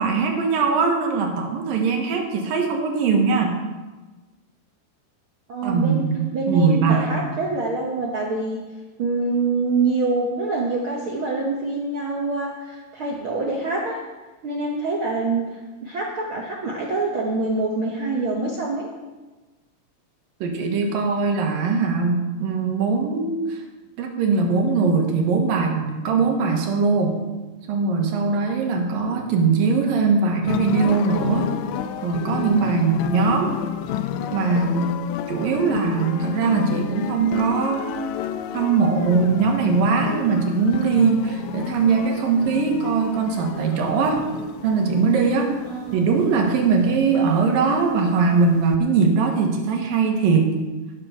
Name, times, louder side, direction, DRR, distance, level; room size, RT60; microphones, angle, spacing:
voice 1, 0.0-3.5 5.6-7.3 20.4-23.6 24.0-27.2 27.7-31.5 32.0-33.6 34.3-34.9 35.3-38.0 38.5-44.2 44.6-45.5 45.9-50.6, right 4 dB, 85° right, 2 dB, 3.2 m, -21 dB
voice 2, 5.5-6.0 6.3-8.6 9.0-14.0 14.4-15.4 15.8-18.9 45.6-46.0, right 3 dB, 55° right, -2 dB, 1.5 m, -25 dB
sound 1, 30.4-48.8, left 9 dB, 85° left, 1.7 m, -31 dB
13.5 x 6.1 x 6.7 m, 1.2 s
omnidirectional pair, 3.9 m